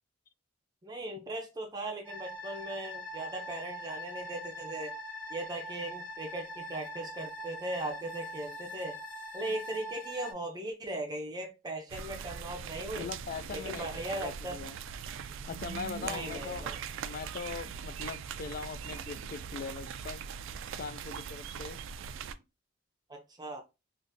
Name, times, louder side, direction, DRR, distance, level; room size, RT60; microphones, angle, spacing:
voice 1, 0.8-5.0 5.3-9.0 9.3-13.1 13.5-14.6 16.0-16.8 23.1-23.6, right 1 dB, 20° right, 0.5 m, -38 dB
sound 1, 2.0-10.3, equal, 10° left, 0.8 m, -42 dB
sound 2, 11.9-22.3, right 7 dB, 70° right, 0.3 m, -41 dB
voice 2, 12.9-14.8 15.5-16.7 17.0-20.2 20.8-21.8, left 5 dB, 45° left, 0.3 m, -41 dB
3.5 x 2.5 x 2.6 m
head